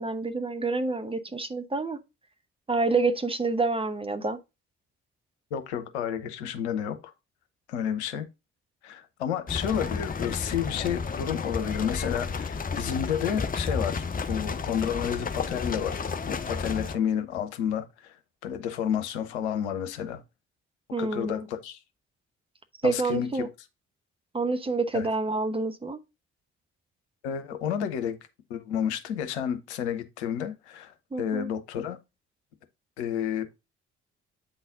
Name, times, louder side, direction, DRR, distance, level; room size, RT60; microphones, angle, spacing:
voice 1, 0.0-2.0 2.7-4.4 20.9-21.5 22.8-23.5 24.3-26.0 31.1-31.5, right 3 dB, 15° right, 1.0 m, -28 dB
voice 2, 5.5-7.0 7.7-8.3 8.8-16.0 16.3-18.2 18.4-20.2 21.0-21.8 22.8-23.5 24.9-25.1 27.2-28.2 28.5-32.0 33.0-33.5, left 9 dB, 75° left, 0.9 m, -30 dB
sound 1, 9.5-17.0, left 5 dB, 25° left, 0.8 m, -32 dB
8.5 x 4.1 x 3.8 m
figure-of-eight pair, 45°, 34 cm